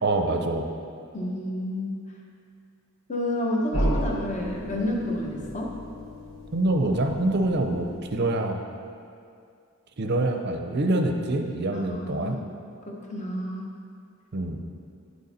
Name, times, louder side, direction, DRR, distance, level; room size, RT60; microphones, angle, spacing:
voice 1, 0.0-0.7 6.5-8.6 10.0-12.4 14.3-14.6, right 2 dB, 45° right, 4 dB, 0.6 m, -25 dB
voice 2, 1.1-2.1 3.1-5.7 11.7-12.4 12.9-13.6, left 1 dB, 30° left, -1 dB, 1.0 m, -30 dB
sound 1, 3.7-8.4, equal, 60° left, 1.3 m, -33 dB
9.1 x 6.6 x 4.2 m, 2.4 s
head